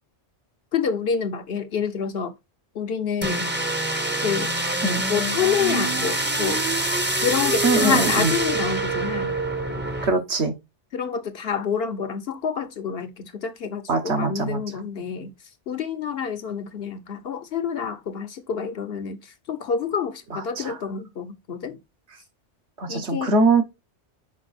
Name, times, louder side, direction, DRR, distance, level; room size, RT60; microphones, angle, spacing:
voice 1, 0.7-2.3 2.7-3.5 4.2-4.5 5.1-6.6 7.2-9.4 10.9-15.3 15.7-21.8 22.9-23.3, left 7 dB, 60° left, 0.9 m, -28 dB
sound 1, 3.2-10.1, right 2 dB, 10° right, 0.7 m, -25 dB
voice 2, 7.6-8.3 10.0-10.5 13.9-14.6 20.6-20.8 22.8-23.6, right 3 dB, 65° right, 1.4 m, -22 dB
5.2 x 4.7 x 4.0 m
omnidirectional pair, 1.2 m